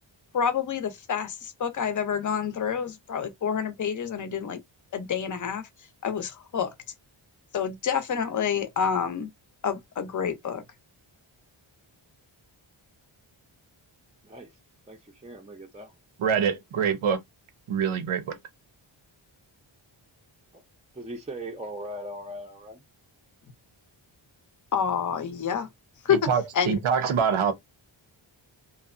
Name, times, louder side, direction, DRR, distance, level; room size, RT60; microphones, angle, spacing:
voice 1, 0.3-4.6 4.9-5.7 6.0-6.7 7.5-9.3 9.6-10.6 24.7-25.7 26.0-26.3 26.5-26.8, left 7 dB, 40° left, 0.6 m, -28 dB
voice 2, 14.2-14.6 14.9-15.9 20.5-20.6 20.9-22.8, right 1 dB, 15° right, 0.4 m, -39 dB
voice 3, 16.2-17.2 17.7-18.4 26.1-27.5, right 7 dB, 90° right, 0.7 m, -25 dB
2.7 x 2.1 x 2.4 m
wide cardioid pair, 115°, 48 cm